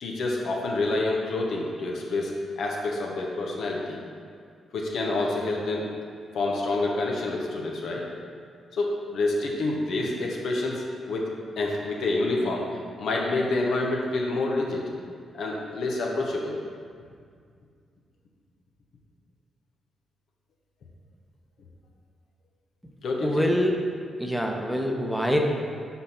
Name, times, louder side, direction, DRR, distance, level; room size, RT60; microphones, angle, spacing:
voice 1, 0.0-4.0 4.7-5.9 6.3-8.1 8.7-11.3 11.6-12.6 13.0-14.8 15.3-16.6 23.0-23.5, left 2 dB, 70° left, -1 dB, 0.8 m, -28 dB
voice 2, 23.2-23.7 24.2-25.4, equal, ahead, 1 dB, 0.8 m, -25 dB
5.5 x 4.0 x 4.3 m, 2.1 s
supercardioid pair, 50°, 0 cm